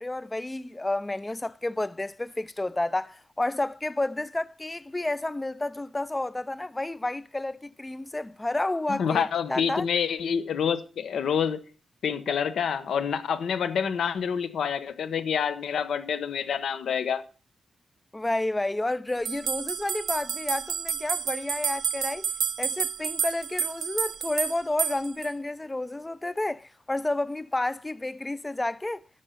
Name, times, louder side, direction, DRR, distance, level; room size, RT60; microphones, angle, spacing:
voice 1, 0.0-9.9 18.1-22.3 22.6-29.0, left 2 dB, 15° left, 0.4 m, -30 dB
voice 2, 8.9-11.6 12.0-17.2, left 7 dB, 80° left, 1.1 m, -27 dB
sound 1, 19.3-25.3, right 8 dB, 75° right, 0.4 m, -30 dB
11.0 x 6.7 x 5.8 m
wide cardioid pair, 125°, 0 cm